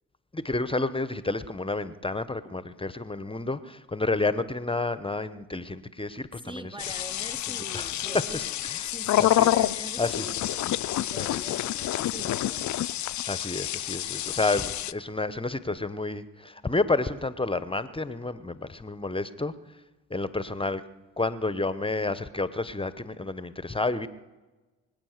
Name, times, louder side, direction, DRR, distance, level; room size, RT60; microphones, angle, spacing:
voice 1, 0.3-6.7 7.7-9.5 10.0-10.3 13.3-19.5 20.1-20.8 21.2-24.1, left 3 dB, 15° left, 14 dB, 0.9 m, -30 dB
voice 2, 6.5-8.5 8.9-12.9, right 2 dB, 10° right, 9 dB, 0.8 m, -43 dB
sound 1, 6.8-14.9, left 13 dB, 45° left, 0.6 m, -28 dB
24.5 x 9.0 x 6.6 m, 1.2 s
hypercardioid pair, 55°, 40 cm